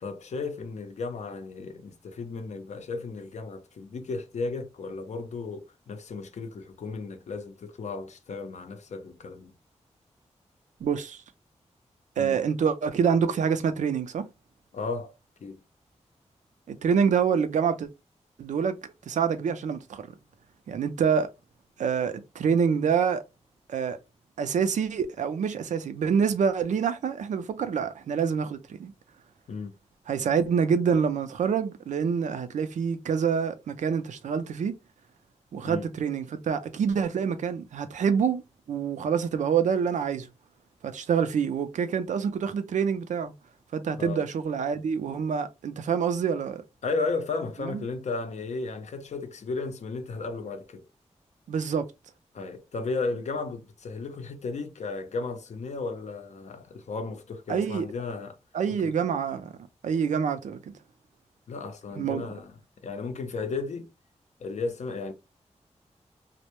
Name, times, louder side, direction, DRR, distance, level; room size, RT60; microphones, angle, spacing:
voice 1, 0.0-9.5 12.2-12.4 14.7-15.1 15.4-15.6 29.5-29.8 35.6-35.9 44.0-44.2 46.8-50.8 52.3-58.4 58.7-58.9 61.5-62.6 62.8-63.9 64.4-65.1, left 4 dB, 70° left, 0.5 m, -34 dB
voice 2, 10.8-11.2 12.2-14.2 16.7-17.9 18.4-20.1 20.7-21.3 21.8-23.2 23.7-24.0 24.4-28.9 30.1-34.7 35.5-38.4 38.7-40.3 40.8-43.3 43.7-46.6 47.7-47.8 51.5-51.9 57.5-57.9 58.5-59.5 59.8-60.6 62.0-62.3, right 6 dB, 85° right, 0.4 m, -26 dB
2.1 x 2.0 x 2.8 m
wide cardioid pair, 75°, 12 cm